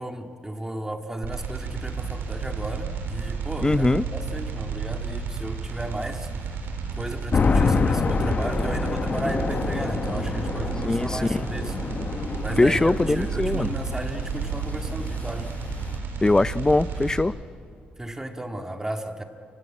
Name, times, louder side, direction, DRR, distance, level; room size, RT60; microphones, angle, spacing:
voice 1, 0.0-6.3 7.0-11.8 12.4-15.5 18.0-19.2, right 1 dB, 15° right, 5 dB, 1.9 m, -34 dB
sound 1, 1.2-17.2, right 5 dB, 80° right, 4.0 m, -32 dB
voice 2, 3.6-4.0 10.8-11.4 12.6-13.7 16.2-17.3, left 2 dB, 20° left, 18 dB, 0.6 m, -21 dB
sound 2, 7.3-16.0, left 5 dB, 45° left, 0.9 m, -27 dB
30.0 x 16.5 x 8.6 m, 2.4 s
cardioid pair, 75°, 4 cm